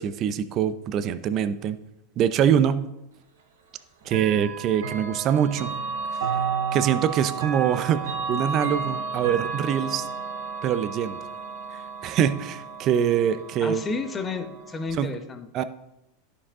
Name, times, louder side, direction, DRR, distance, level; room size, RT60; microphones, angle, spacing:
voice 1, 0.0-1.8 2.2-2.8 4.1-5.7 6.1-6.3 6.7-10.1 10.6-11.2 11.7-13.8 14.9-15.1 15.5-15.6, right 9 dB, 45° right, 12 dB, 0.5 m, -24 dB
Chime / Clock, 4.1-14.9, right 5 dB, 90° right, 1.2 m, -32 dB
voice 2, 13.6-15.5, left 4 dB, 20° left, 8 dB, 0.9 m, -31 dB
11.0 x 4.9 x 3.7 m, 0.89 s
supercardioid pair, 115°, 0 cm